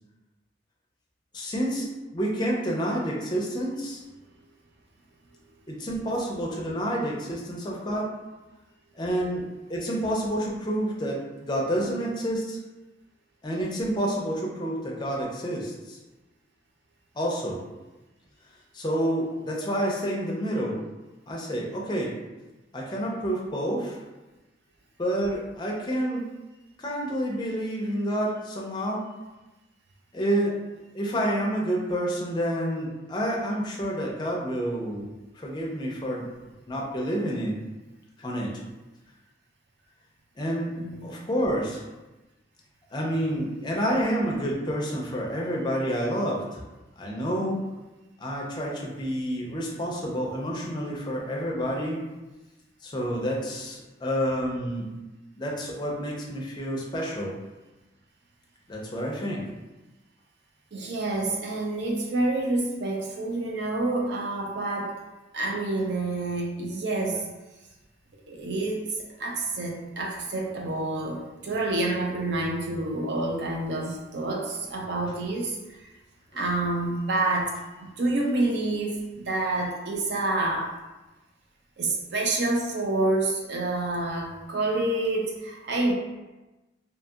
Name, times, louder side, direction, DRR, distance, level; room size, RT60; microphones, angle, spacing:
voice 1, 1.3-4.0 5.7-8.0 9.0-12.6 13.4-16.0 17.2-17.6 18.7-20.8 21.3-22.1 22.7-24.0 25.0-26.2 26.8-29.0 30.1-30.5 30.9-35.1 35.4-36.3 36.7-37.5 38.2-38.5 40.4-40.7 41.0-41.8 42.9-46.6 47.0-47.6 48.2-52.0 52.8-54.8 55.4-57.3 58.7-59.4, equal, 25° left, -3 dB, 0.4 m, -29 dB
voice 2, 40.8-41.1 60.7-65.0 65.3-67.2 68.3-75.9 76.3-77.5 77.8-80.7 81.8-85.9, right 2 dB, 65° right, 0 dB, 0.5 m, -28 dB
2.7 x 2.7 x 2.3 m, 1.1 s
head